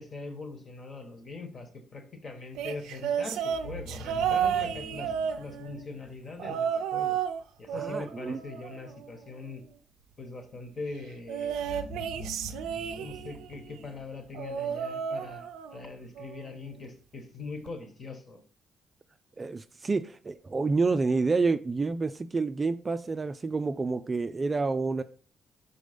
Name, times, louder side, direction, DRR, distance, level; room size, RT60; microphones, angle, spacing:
voice 1, 0.0-7.2 7.6-9.6 10.2-12.3 13.0-18.4, left 3 dB, 45° left, 1.5 m, -42 dB
sound 1, 2.5-5.9 6.4-7.4 7.7-9.2 11.3-13.5 14.3-15.8 16.2-16.5 17.7-17.8, right 8 dB, 90° right, 0.4 m, -32 dB
sound 2, 3.5-6.5 11.4-14.7, equal, 80° left, 1.7 m, -45 dB
voice 2, 7.7-8.4 19.4-25.0, right 4 dB, 30° right, 0.4 m, -28 dB
5.1 x 4.1 x 5.1 m
cardioid pair, 90°, 0 cm